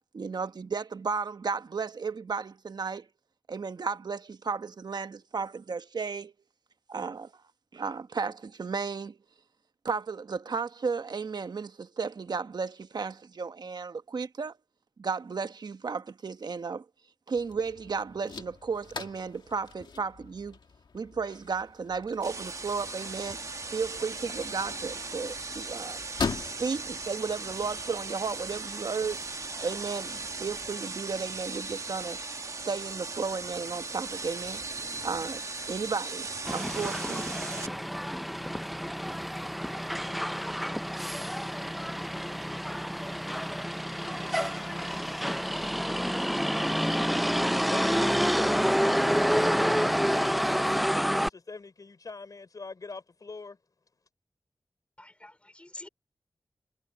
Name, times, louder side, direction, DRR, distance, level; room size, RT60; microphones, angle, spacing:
voice 1, 0.1-3.1 3.5-6.3 6.9-7.3 7.7-9.2 9.8-14.5 15.0-16.8 17.3-20.6 20.9-23.4 23.7-26.0 26.6-29.2 29.6-32.2 32.7-34.6 35.0-35.4 35.7-37.3, right 5 dB, 65° right, 1.1 m, -34 dB
sound 1, 17.3-29.7, left 5 dB, 85° left, 2.0 m, -42 dB
sound 2, 22.2-37.7, right 3 dB, 45° right, 1.0 m, -38 dB
Motor vehicle (road), 36.4-51.3, equal, ahead, 0.4 m, -28 dB
voice 2, 47.7-50.6 51.0-53.6, left 4 dB, 55° left, 4.7 m, -43 dB
voice 3, 55.0-55.9, left 1 dB, 15° left, 2.7 m, -47 dB
wide cardioid pair, 110°, 8 cm